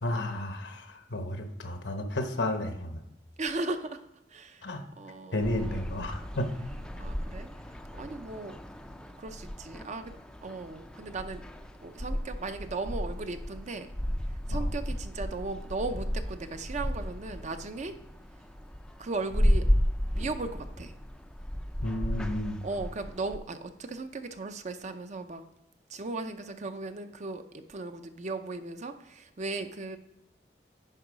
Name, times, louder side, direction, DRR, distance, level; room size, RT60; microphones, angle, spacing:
voice 1, 0.0-3.0 4.6-4.8 5.3-6.5 14.5-14.7 21.8-22.6, left 1 dB, 80° left, 5 dB, 1.0 m, -32 dB
voice 2, 3.4-4.0 4.3-4.7 5.0-5.9 7.0-7.5 7.9-8.6 9.2-11.4 11.8-13.9 14.5-17.9 19.0-19.7 20.1-20.9 22.6-25.4 25.9-30.0, right 3 dB, 40° right, 8 dB, 0.6 m, -37 dB
sound 1, 5.4-23.4, equal, 5° left, 0.4 m, -33 dB
10.0 x 3.9 x 5.0 m, 0.84 s
head